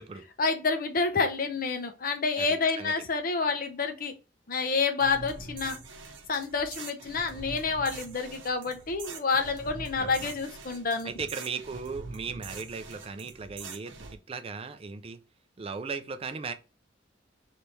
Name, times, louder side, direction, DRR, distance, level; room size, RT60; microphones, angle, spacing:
voice 1, 0.4-4.1 4.5-5.8 6.3-11.1, left 4 dB, 50° left, 0.7 m, -28 dB
sound 1, 5.0-14.1, right 4 dB, 85° right, 0.8 m, -44 dB
voice 2, 10.0-10.3 11.0-15.2 15.6-16.5, right 5 dB, 30° right, 0.4 m, -37 dB
3.3 x 3.2 x 4.1 m
head